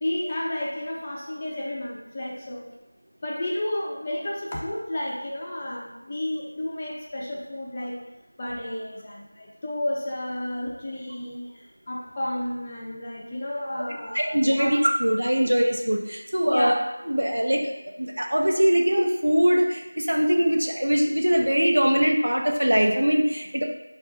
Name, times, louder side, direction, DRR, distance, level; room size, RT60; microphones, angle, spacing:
voice 1, 0.0-2.7 3.2-8.0 8.4-14.7 16.5-16.7, left 1 dB, 15° left, -5 dB, 0.4 m, -31 dB
voice 2, 14.1-16.7 17.1-17.6 18.0-23.6, equal, 90° right, 1 dB, 0.7 m, -22 dB
5.9 x 2.4 x 2.6 m, 1.0 s
figure-of-eight pair, 175°, 0 cm